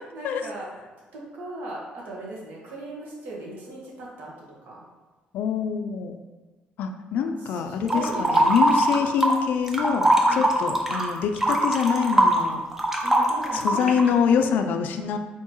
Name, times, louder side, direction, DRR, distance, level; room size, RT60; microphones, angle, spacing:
voice 1, 0.1-0.7 1.1-4.3 4.6-4.8 7.2-8.5 10.2-10.5 13.0-14.0 14.3-14.5, right 1 dB, 80° right, -4 dB, 1.4 m, -38 dB
voice 2, 5.3-6.2 6.8-12.6 13.5-15.2, left 7 dB, 70° left, 7 dB, 0.3 m, -25 dB
sound 1, 7.9-9.4 9.7-14.1, right 1 dB, 10° right, 0.5 m, -21 dB
4.5 x 3.8 x 3.0 m, 1.3 s
cardioid pair, 165°, 3 cm